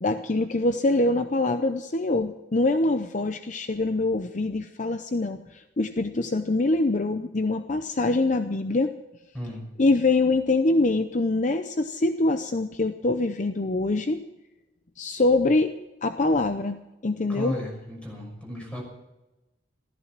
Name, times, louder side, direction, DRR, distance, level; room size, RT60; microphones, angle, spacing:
voice 1, 0.0-8.9 9.8-14.2 15.0-15.7 16.0-17.6, left 2 dB, 45° left, 8 dB, 0.7 m, -24 dB
voice 2, 17.3-18.8, equal, 5° left, -1 dB, 6.2 m, -34 dB
15.5 x 14.0 x 6.0 m, 1.0 s
head